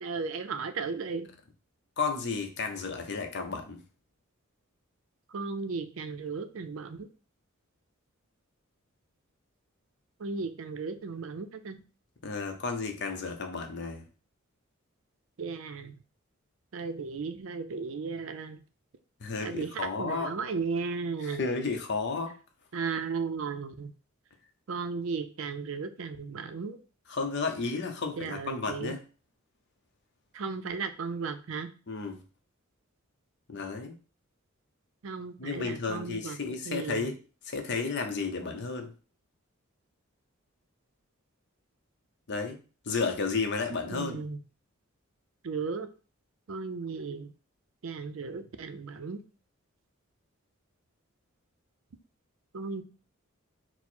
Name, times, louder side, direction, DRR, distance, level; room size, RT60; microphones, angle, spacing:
voice 1, 0.0-1.3 5.3-7.1 10.2-11.8 15.4-15.9 16.7-18.6 19.4-19.7 20.0-21.4 22.7-23.9 24.7-26.8 28.2-28.9 30.3-31.7 35.0-36.4 36.7-37.1 43.9-44.4 45.4-45.9 46.5-47.3 47.8-49.2 52.5-52.8, right 5 dB, 70° right, 9 dB, 0.5 m, -35 dB
voice 2, 2.0-3.8 12.2-14.0 19.2-20.4 21.2-22.4 27.1-29.0 31.9-32.2 33.5-34.0 35.4-38.9 42.3-42.6 42.9-44.2, left 4 dB, 50° left, 5 dB, 0.7 m, -32 dB
4.5 x 2.1 x 4.2 m, 0.36 s
head